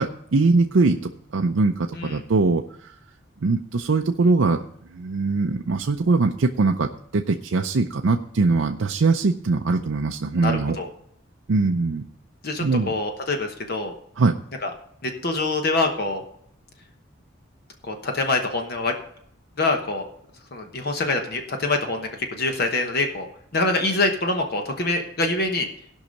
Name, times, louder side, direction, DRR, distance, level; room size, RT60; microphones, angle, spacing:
voice 1, 0.0-2.6 3.4-4.7 4.9-10.8 11.5-12.1 12.6-12.9 14.2-14.3, right 3 dB, 75° right, 3 dB, 0.5 m, -21 dB
voice 2, 10.3-10.9 12.4-13.9 14.6-14.7 15.0-16.2 17.8-18.9 19.6-20.0 20.5-23.3 23.5-25.7, left 2 dB, 50° left, 4 dB, 1.1 m, -25 dB
16.0 x 5.6 x 5.2 m, 0.69 s
head